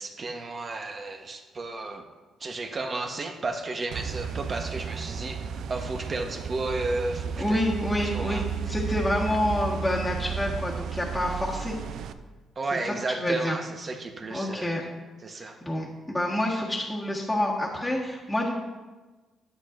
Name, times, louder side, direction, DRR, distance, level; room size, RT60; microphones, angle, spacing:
voice 1, 0.0-2.0 2.4-7.6 8.1-8.4 12.6-14.9 15.2-15.6, right 3 dB, 35° right, 4 dB, 1.1 m, -33 dB
sound 1, 3.9-12.1, right 6 dB, 75° right, 0.4 m, -33 dB
voice 2, 7.4-11.8 12.9-13.6 14.3-14.8 15.4-18.5, left 1 dB, 10° left, -6 dB, 1.6 m, -28 dB
10.5 x 8.5 x 2.6 m, 1.3 s
cardioid pair, 90°, 0 cm